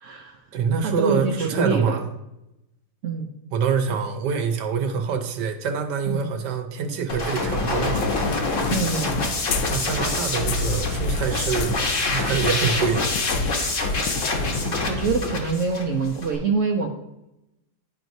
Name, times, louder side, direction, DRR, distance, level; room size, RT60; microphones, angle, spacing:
voice 1, 0.0-0.4 0.8-2.0 3.0-3.3 6.1-6.2 8.7-9.3 14.9-16.9, right 4 dB, 60° right, 3 dB, 0.9 m, -25 dB
voice 2, 0.5-2.1 3.5-8.1 9.7-13.1, right 6 dB, 85° right, 5 dB, 1.5 m, -25 dB
sound 1, 7.1-16.4, left 2 dB, 50° left, 1.4 m, -25 dB
sound 2, 7.9-14.6, left 8 dB, 75° left, 1.1 m, -35 dB
11.5 x 4.5 x 2.7 m, 0.89 s
omnidirectional pair, 1.8 m